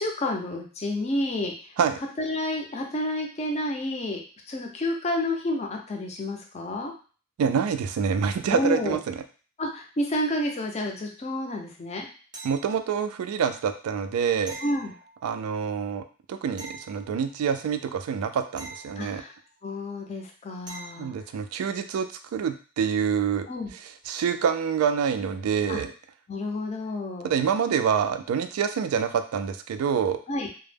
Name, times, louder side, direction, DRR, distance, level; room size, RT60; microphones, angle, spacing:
voice 1, 0.0-1.5 2.2-4.2 4.5-6.9 8.5-9.0 9.6-12.1 14.6-14.9 19.0-19.3 19.6-21.1 23.5-23.7 25.7-25.8 26.3-27.3 30.3-30.5, left 1 dB, 30° left, 2 dB, 0.4 m, -29 dB
voice 2, 7.4-9.2 12.4-14.6 15.2-19.2 21.0-23.5 24.1-25.9 27.2-30.2, right 7 dB, 85° right, 10 dB, 0.3 m, -26 dB
sound 1, 12.3-13.1 14.5-15.5 16.6-17.6 18.6-19.6 20.7-21.3 24.0-24.1, right 3 dB, 20° right, 0.5 m, -44 dB
2.1 x 2.0 x 3.2 m, 0.38 s
head